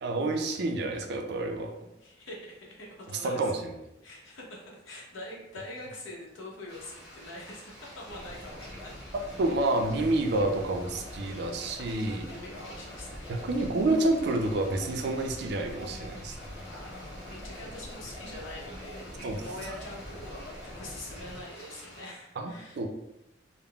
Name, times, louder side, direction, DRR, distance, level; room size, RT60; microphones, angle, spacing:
voice 1, 0.0-1.7 3.1-3.7 9.1-12.3 13.3-16.3 19.2-19.4 22.4-22.9, right 2 dB, 60° right, 4 dB, 0.4 m, -29 dB
voice 2, 2.0-3.7 4.0-8.9 10.0-10.3 11.8-11.9 12.2-13.4 16.6-22.8, left 1 dB, 85° left, -2 dB, 0.8 m, -44 dB
sound 1, 6.7-22.0, equal, 35° left, 1.4 m, -50 dB
sound 2, 8.1-21.4, left 1 dB, 55° left, 0.8 m, -44 dB
3.5 x 2.0 x 2.2 m, 0.87 s
head